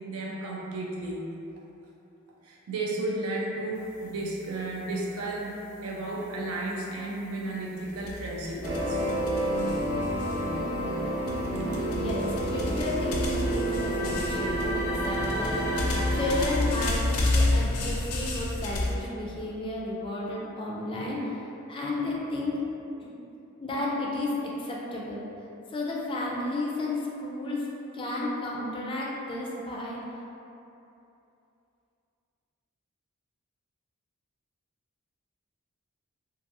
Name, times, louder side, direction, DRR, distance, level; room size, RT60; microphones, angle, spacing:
voice 1, 0.1-1.2 2.4-9.0, right 2 dB, 85° right, -3 dB, 0.5 m, -33 dB
sound 1, 7.9-10.8 11.3-19.0, left 2 dB, 90° left, 0.4 m, -31 dB
sound 2, 8.6-16.6, right 1 dB, 45° right, 0.7 m, -29 dB
voice 2, 11.7-22.6 23.0-23.1 23.6-25.2 25.7-27.6 27.9-30.0, left 2 dB, 25° left, -4 dB, 0.3 m, -32 dB
2.6 x 2.6 x 2.6 m, 2.8 s
head